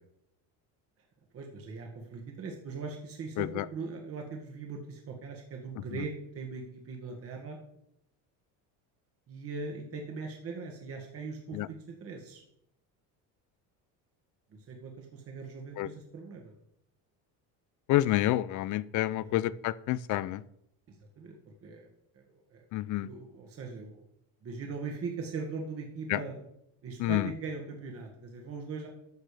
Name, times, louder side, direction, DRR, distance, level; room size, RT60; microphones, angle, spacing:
voice 1, 1.3-7.6 9.3-12.4 14.5-16.5 19.1-19.5 20.9-21.9 22.1-22.6 23.0-24.0 24.4-26.4 26.8-28.9, right 4 dB, 35° right, 2 dB, 1.7 m, -40 dB
voice 2, 17.9-20.4 22.7-23.1 26.1-26.2 27.0-27.2, left 15 dB, 50° left, 18 dB, 0.5 m, -28 dB
12.0 x 6.7 x 5.0 m, 0.78 s
cardioid pair, 145°, 38 cm